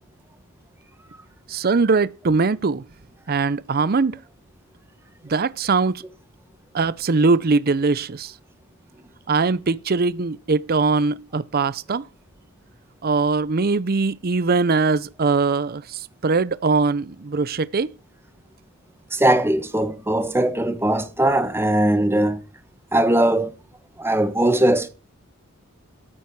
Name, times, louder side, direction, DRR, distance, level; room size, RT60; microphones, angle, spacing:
voice 1, 1.5-2.8 3.3-4.2 5.2-6.0 6.7-8.3 9.3-12.1 13.0-17.9, right 4 dB, 45° right, 0.6 m, -21 dB
voice 2, 19.1-22.4 22.9-23.5 24.0-24.9, right 1 dB, 10° right, 1.3 m, -20 dB
13.5 x 9.0 x 4.7 m
head